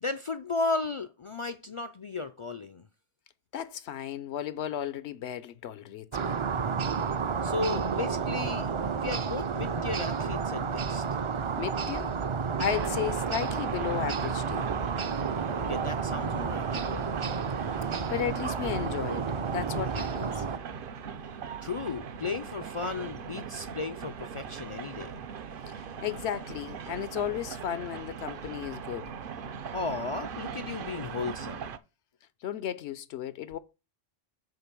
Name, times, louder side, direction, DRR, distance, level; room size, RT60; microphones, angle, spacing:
voice 1, 0.0-2.9 7.4-11.0 15.6-17.0 21.6-25.1 29.7-31.7, left 3 dB, 50° left, 0.4 m, -35 dB
voice 2, 3.5-6.4 11.6-12.1 12.6-14.7 18.1-19.3 19.5-20.4 25.7-25.8 26.0-29.1 32.4-33.6, left 10 dB, 85° left, 0.9 m, -34 dB
sound 1, 6.1-20.6, right 5 dB, 40° right, 0.4 m, -31 dB
sound 2, 12.6-31.8, right 6 dB, 60° right, 0.8 m, -40 dB
6.7 x 4.4 x 5.9 m
omnidirectional pair, 1.1 m